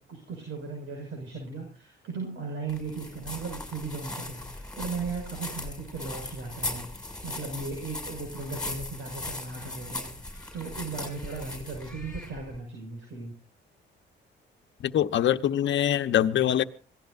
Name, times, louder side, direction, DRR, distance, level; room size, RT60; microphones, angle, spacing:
voice 1, 0.0-13.3, right 4 dB, 75° right, 2 dB, 6.2 m, -37 dB
sound 1, 2.7-12.6, left 2 dB, 5° left, 6.6 m, -38 dB
voice 2, 14.8-16.6, left 11 dB, 70° left, 9 dB, 1.1 m, -24 dB
26.0 x 18.0 x 2.7 m, 0.36 s
cardioid pair, 90°, 20 cm